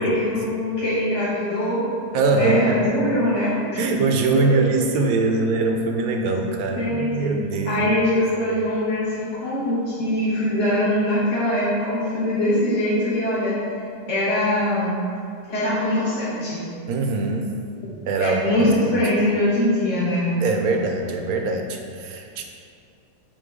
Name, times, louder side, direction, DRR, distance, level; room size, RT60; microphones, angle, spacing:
voice 1, 0.0-1.8 2.3-3.5 4.5-4.6 6.8-7.3 7.6-13.5 14.1-14.9 15.5-16.6 18.2-20.3, left 1 dB, 45° left, -11 dB, 1.6 m, -22 dB
voice 2, 2.1-2.8 3.8-7.8 16.9-17.5 18.1-19.0 20.4-22.4, right 3 dB, 65° right, 3 dB, 1.0 m, -22 dB
7.4 x 3.0 x 4.9 m, 2.3 s
omnidirectional pair, 1.7 m